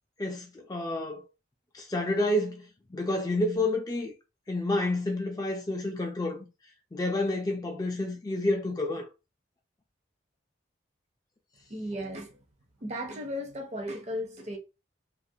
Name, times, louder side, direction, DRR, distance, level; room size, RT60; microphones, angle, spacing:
voice 1, 0.2-1.2 1.7-4.1 4.5-6.5 6.9-9.1, left 1 dB, 20° left, 0.3 m, -29 dB
voice 2, 11.7-12.4 12.8-14.6, equal, 35° right, 0.5 m, -35 dB
2.4 x 2.1 x 2.6 m
head